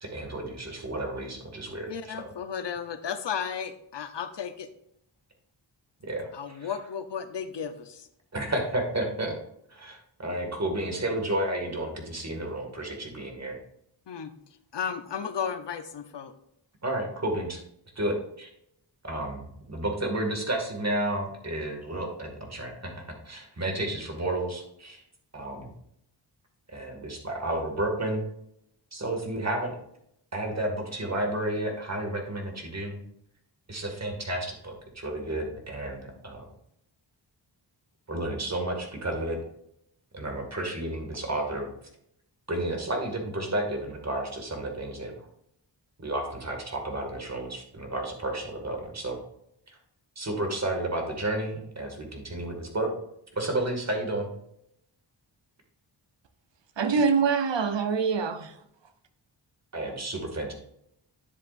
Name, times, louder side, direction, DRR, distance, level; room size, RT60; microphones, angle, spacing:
voice 1, 0.0-2.2 6.0-6.7 8.3-9.3 9.7-13.6 16.8-17.6 18.0-18.5 19.0-25.0 25.3-25.7 26.7-28.2 28.9-29.8 30.3-33.0 33.7-36.5 38.1-39.4 40.1-41.7 42.5-45.1 46.0-49.2 49.7-49.8 50.2-52.9 53.3-54.3 59.7-60.5, right 1 dB, 35° right, 2 dB, 2.2 m, -31 dB
voice 2, 1.9-4.7 6.3-8.1 14.1-14.3 14.7-16.3, left 7 dB, 65° left, 9 dB, 0.9 m, -34 dB
voice 3, 56.8-58.5, right 5 dB, 70° right, 9 dB, 0.9 m, -24 dB
10.0 x 7.4 x 2.6 m, 0.75 s
wide cardioid pair, 70°, 45 cm